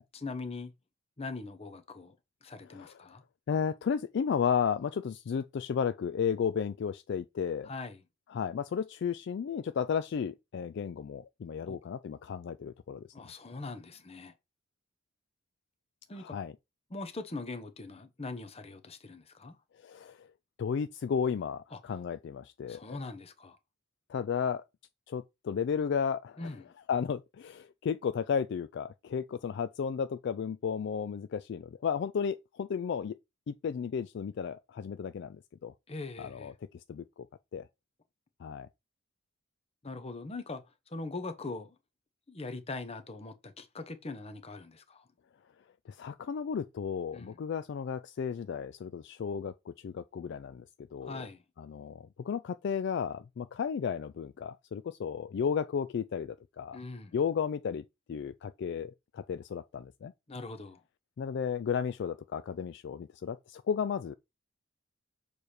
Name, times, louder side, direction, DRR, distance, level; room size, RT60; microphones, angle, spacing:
voice 1, 0.1-0.7 1.2-2.1 2.4-3.2 7.6-8.0 11.7-11.8 13.1-14.3 16.1-16.4 16.9-19.6 21.7-21.8 22.7-23.6 26.4-26.7 35.9-36.5 39.8-40.6 40.9-41.7 42.3-45.0 47.1-47.4 51.0-51.4 56.7-57.1 60.3-60.8, left 3 dB, 30° left, 0.8 m, -41 dB
voice 2, 3.5-7.7 8.3-13.1 16.2-16.5 19.8-20.3 20.6-23.0 24.1-24.6 25.1-26.5 26.9-33.2 33.5-35.7 36.2-36.5 36.9-37.3 37.5-37.7 38.4-38.7 46.0-50.6 50.9-51.3 51.6-56.8 57.1-60.1 61.2-64.1, left 7 dB, 55° left, 0.3 m, -33 dB
6.8 x 3.3 x 4.3 m
head